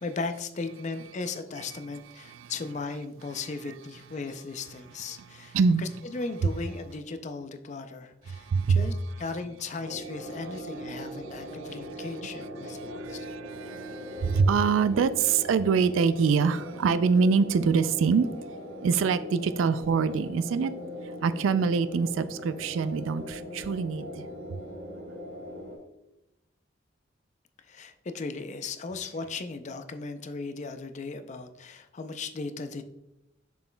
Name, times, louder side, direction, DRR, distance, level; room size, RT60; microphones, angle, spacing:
voice 1, 0.0-13.3 27.7-32.8, left 3 dB, 40° left, 0.4 m, -37 dB
voice 2, 5.5-5.8 8.3-8.8 11.0-12.0 12.6-18.3 18.8-20.7 21.2-24.3, right 5 dB, 85° right, 0.3 m, -25 dB
sound 1, 9.8-25.8, equal, 60° right, 1.9 m, -40 dB
7.0 x 6.1 x 2.2 m
head